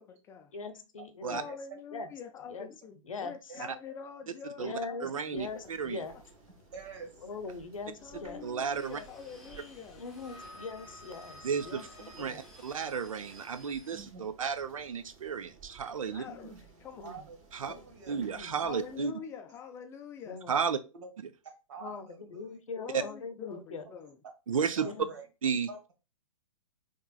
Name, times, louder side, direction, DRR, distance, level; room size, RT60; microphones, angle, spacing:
voice 1, 0.0-0.5 1.3-5.7 6.1-6.2 8.0-10.0 16.1-16.5 16.8-17.1 17.7-17.8 18.5-20.4 22.8-24.2, left 7 dB, 15° left, 0.4 m, -45 dB
voice 2, 0.5-1.5 1.9-2.1 2.5-2.7 3.1-3.3 4.6-6.1 7.2-8.4 10.0-12.4 17.0-17.2 18.1-18.5 20.3-20.5 21.8-22.1 22.3-23.8 24.8-25.1, left 4 dB, 70° left, 0.7 m, -41 dB
voice 3, 5.0-6.0 8.4-9.0 11.4-11.9 12.2-16.2 17.5-17.7 18.1-19.1 20.5-20.8 22.9-23.0 24.5-24.9 25.4-25.7, right 6 dB, 75° right, 0.4 m, -33 dB
sound 1, 5.3-19.0, right 4 dB, 30° right, 2.1 m, -57 dB
voice 4, 6.7-7.3 13.9-14.3 16.3-16.6 17.0-18.2 20.9-21.1 21.7-22.6 24.8-25.2 25.7-25.9, right 4 dB, 55° right, 1.4 m, -47 dB
sound 2, 8.7-14.0, left 1 dB, ahead, 0.9 m, -52 dB
4.5 x 3.0 x 2.3 m
figure-of-eight pair, 115°, 17 cm